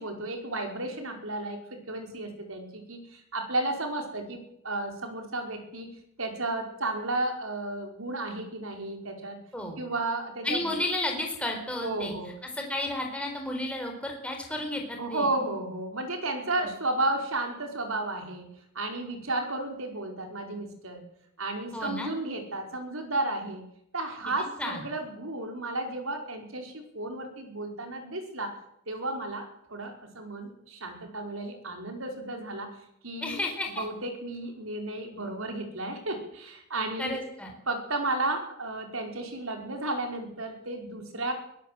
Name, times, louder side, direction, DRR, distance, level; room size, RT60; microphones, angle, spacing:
voice 1, 0.0-9.4 9.8-10.7 11.8-12.3 15.0-18.5 18.7-21.0 21.4-23.6 23.9-28.6 28.9-32.8 33.0-33.4 33.7-37.2 37.7-41.3, right 2 dB, 70° right, 3 dB, 5.0 m, -33 dB
voice 2, 10.4-12.1 12.6-15.3 16.6-16.7 21.7-22.1 24.6-24.8 33.2-33.8 37.0-37.5, left 1 dB, 5° left, 2 dB, 4.3 m, -32 dB
22.5 x 17.0 x 7.7 m, 0.74 s
head